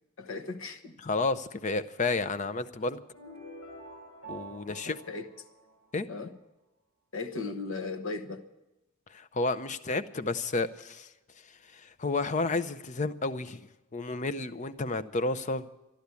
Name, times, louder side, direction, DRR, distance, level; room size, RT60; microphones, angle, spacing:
voice 1, 0.2-1.0 4.7-5.3 6.1-6.3 7.1-8.4, left 3 dB, 65° left, 8 dB, 1.0 m, -37 dB
voice 2, 1.0-3.0 4.3-5.0 5.9-6.1 9.1-11.1 11.7-15.7, left 3 dB, 35° left, 14 dB, 0.6 m, -31 dB
sound 1, 3.1-6.2, right 2 dB, 90° left, 7.8 m, -47 dB
13.5 x 11.5 x 8.3 m, 1.0 s
head